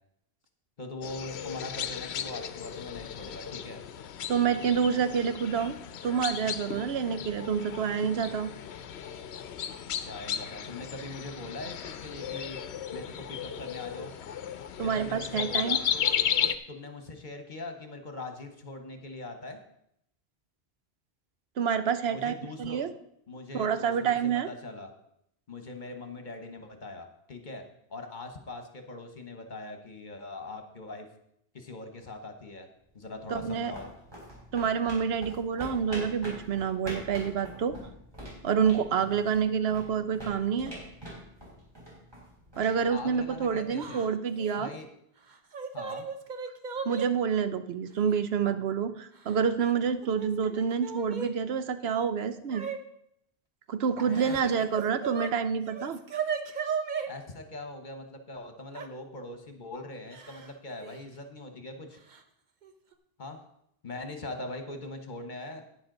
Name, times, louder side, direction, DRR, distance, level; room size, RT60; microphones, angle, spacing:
voice 1, 0.8-3.8 9.9-12.6 12.9-14.1 14.8-16.1 16.7-19.6 22.1-22.9 23.3-24.9 25.5-27.6 27.9-31.1 31.5-32.7 32.9-33.9 42.9-44.0 44.5-44.9 45.7-46.1 54.0-54.7 57.1-62.0 63.2-63.4 63.8-65.6, left 2 dB, 50° left, 5 dB, 1.3 m, -41 dB
sound 1, 1.0-16.6, left 8 dB, 90° left, 0.9 m, -35 dB
voice 2, 4.3-5.8 6.0-8.5 14.8-15.8 21.6-22.9 23.5-24.5 33.3-33.7 34.5-37.8 38.4-40.7 42.6-44.7 46.8-52.6 53.7-56.0, right 7 dB, 75° right, 11 dB, 0.9 m, -28 dB
sound 2, 32.9-43.7, equal, 25° right, 4.4 m, -45 dB
Yell / Crying sobbing, 43.8-44.1 44.4-44.6 45.3-47.1 48.0-48.1 49.2-49.7 50.0-51.3 52.5-52.8 54.0-55.3 55.6-57.1 58.7-58.9 60.1-60.5 60.8-61.0 62.1-62.2 62.6-62.9, right 6 dB, 50° right, 0.9 m, -36 dB
11.5 x 9.5 x 3.9 m, 0.75 s
omnidirectional pair, 1.1 m